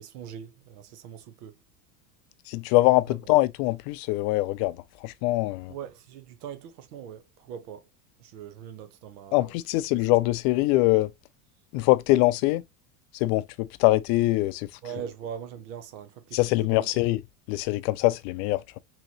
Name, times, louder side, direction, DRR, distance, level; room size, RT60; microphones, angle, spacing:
voice 1, 0.0-1.6 3.0-3.2 5.7-7.9 8.2-9.8 14.8-16.8, right 8 dB, 90° right, 0.8 m, -41 dB
voice 2, 2.5-5.7 9.3-11.1 11.7-12.6 13.1-14.7 16.3-17.2 17.5-18.8, left 19 dB, 50° left, 0.5 m, -23 dB
3.9 x 2.9 x 2.7 m
supercardioid pair, 130°, 46 cm